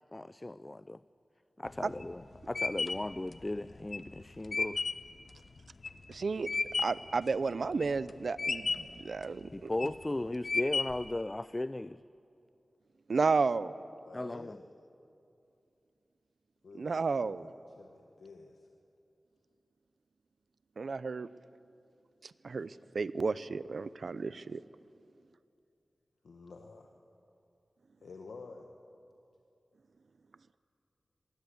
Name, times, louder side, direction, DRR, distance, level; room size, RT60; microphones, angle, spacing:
voice 1, 0.1-1.0 1.6-4.8 9.5-12.0 14.1-14.6, left 1 dB, 30° left, 16 dB, 0.4 m, -36 dB
sound 1, 1.7-7.1 7.5-8.1 8.4-9.0 9.6-10.0 10.4-11.1, left 4 dB, 65° left, 0.7 m, -33 dB
voice 2, 6.1-6.5 6.8-9.7 13.1-13.7 16.8-17.5 20.8-21.3 22.4-24.6, right 4 dB, 75° right, 17 dB, 0.5 m, -32 dB
voice 3, 14.0-14.6 16.6-18.7 26.2-26.9 28.0-28.7, left 4 dB, 85° left, 3 dB, 1.1 m, -50 dB
21.0 x 16.5 x 8.3 m, 2.6 s
cardioid pair, 40°, 0 cm